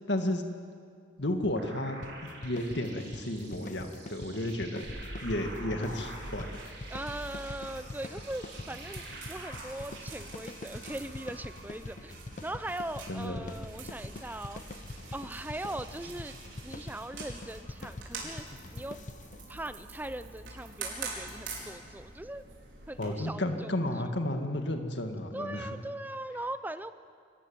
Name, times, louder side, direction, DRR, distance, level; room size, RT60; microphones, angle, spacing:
voice 1, 0.1-0.4 1.2-4.9 5.2-6.5 13.1-13.4 23.0-25.7, left 1 dB, 65° left, 5 dB, 1.9 m, -32 dB
sound 1, 1.6-9.6, right 2 dB, 65° right, 6.8 m, -48 dB
sound 2, 2.0-19.5, left 2 dB, 40° left, 0.7 m, -45 dB
sound 3, 4.8-23.1, right 3 dB, 85° right, 4.8 m, -45 dB
voice 2, 6.9-14.6 15.1-16.4 16.6-18.5 18.7-19.0 19.5-22.4 22.9-23.8 25.3-26.9, right 1 dB, 10° right, 12 dB, 0.6 m, -40 dB
25.0 x 14.5 x 9.4 m, 2.2 s
head